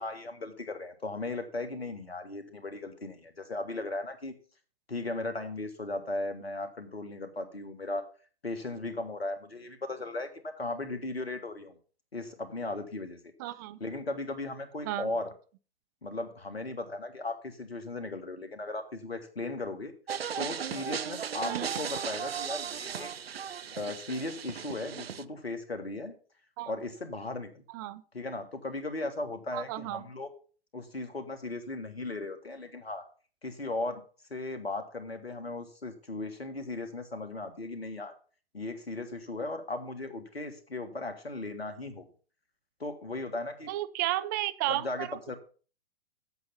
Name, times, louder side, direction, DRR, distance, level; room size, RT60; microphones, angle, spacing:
voice 1, 0.0-4.3 4.9-8.1 8.4-11.8 12.1-13.2 13.8-15.3 16.0-19.9 20.4-23.1 23.7-26.1 26.7-27.6 28.1-30.3 30.7-33.1 33.4-34.0 34.3-38.1 38.5-42.1 42.8-43.7 44.7-45.4, left 2 dB, 90° left, 8 dB, 1.6 m, -37 dB
voice 2, 13.4-13.8 14.9-15.1 21.4-21.7 26.6-26.7 27.7-28.0 29.5-30.0 43.7-45.3, right 15 dB, 20° right, 15 dB, 0.3 m, -33 dB
sound 1, 20.1-25.2, right 8 dB, 80° right, 0.6 m, -36 dB
8.1 x 7.1 x 5.6 m, 0.39 s
figure-of-eight pair, 115°, 30 cm